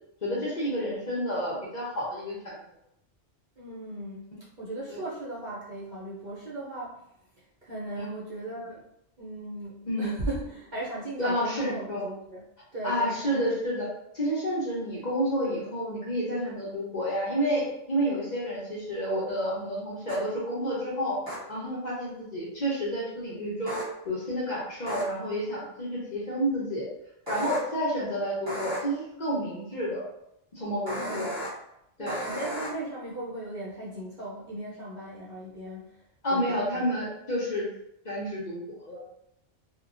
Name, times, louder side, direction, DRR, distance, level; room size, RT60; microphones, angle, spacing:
voice 1, 0.2-2.6 4.9-5.0 8.0-8.1 9.9-10.1 11.2-12.1 12.8-13.9 14.1-21.1 21.5-23.8 24.0-26.9 27.3-30.1 30.6-31.3 32.0-32.1 36.2-37.7 38.0-39.0, equal, 45° left, -6 dB, 0.8 m, -30 dB
voice 2, 3.6-7.0 7.4-8.9 9.2-12.4 12.7-13.5 30.9-31.4 32.0-36.0 36.3-36.8, right 2 dB, 50° right, -7 dB, 0.6 m, -37 dB
sound 1, 20.1-20.2 21.3-21.4 23.7-23.8 24.9-25.0 27.3-27.6 28.5-28.8 30.9-31.5 32.1-32.7, right 1 dB, 25° right, 1.1 m, -34 dB
2.9 x 2.2 x 2.5 m, 0.79 s
omnidirectional pair, 1.2 m